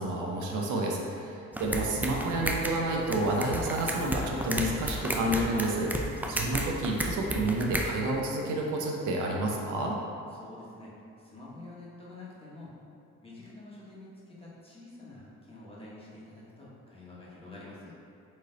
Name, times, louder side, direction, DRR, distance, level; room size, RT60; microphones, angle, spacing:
voice 1, 0.0-9.9, right 2 dB, 80° right, -1 dB, 0.7 m, -30 dB
sound 1, 1.5-7.9, right 1 dB, 5° right, 0.3 m, -33 dB
voice 2, 10.3-10.9 11.2-12.7 13.2-17.9, left 2 dB, 20° left, -7 dB, 1.3 m, -48 dB
4.3 x 3.3 x 3.8 m, 2.6 s
cardioid pair, 90°, 30 cm